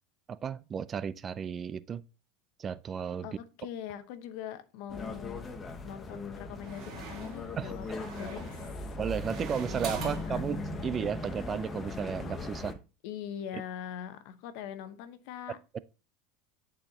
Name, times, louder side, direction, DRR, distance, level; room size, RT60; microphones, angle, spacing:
voice 1, 0.3-2.0 2.6-3.3 7.6-7.7 9.0-12.8 15.7-15.8, right 7 dB, 30° right, 0.3 m, -34 dB
voice 2, 3.2-5.5 5.8-7.9 8.2-8.9 10.0-10.4 13.0-15.6, left 9 dB, 65° left, 0.9 m, -42 dB
sound 1, 4.9-12.7, left 2 dB, 20° left, 0.9 m, -39 dB
sound 2, 5.2-5.7 6.4-10.3, right 6 dB, 50° right, 1.7 m, -43 dB
10.5 x 4.4 x 2.9 m
supercardioid pair, 125°, 0 cm